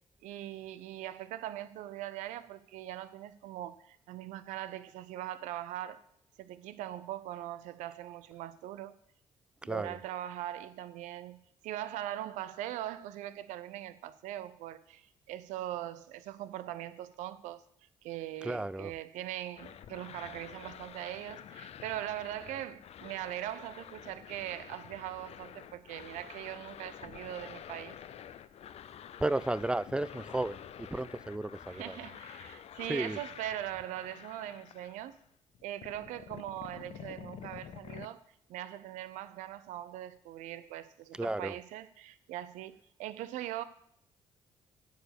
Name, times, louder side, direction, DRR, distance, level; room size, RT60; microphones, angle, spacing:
voice 1, 0.2-6.0 6.4-9.0 9.6-11.4 11.6-17.6 18.0-28.0 31.7-35.2 35.6-38.2 38.5-43.6, right 13 dB, 80° right, 0.6 m, -41 dB
voice 2, 9.6-10.0 18.4-18.9 29.2-30.6 30.9-32.0 32.9-33.2 41.1-41.5, right 2 dB, 5° right, 0.4 m, -33 dB
sound 1, 19.6-35.3 35.5-38.1, left 9 dB, 55° left, 0.5 m, -49 dB
10.0 x 4.8 x 6.8 m
supercardioid pair, 60°, 12 cm